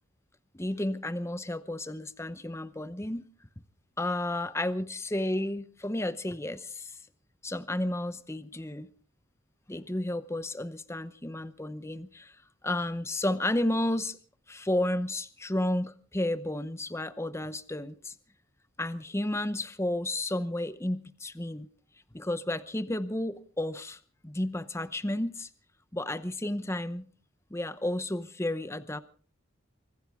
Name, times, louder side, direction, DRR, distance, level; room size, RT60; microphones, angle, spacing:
voice 1, 0.5-3.2 4.0-7.0 7.4-8.9 9.7-12.3 12.6-14.2 14.5-18.1 18.8-21.7 22.1-25.5 25.9-27.1 27.5-29.0, left 1 dB, 15° left, 0.7 m, -32 dB
24.5 x 15.5 x 3.6 m
head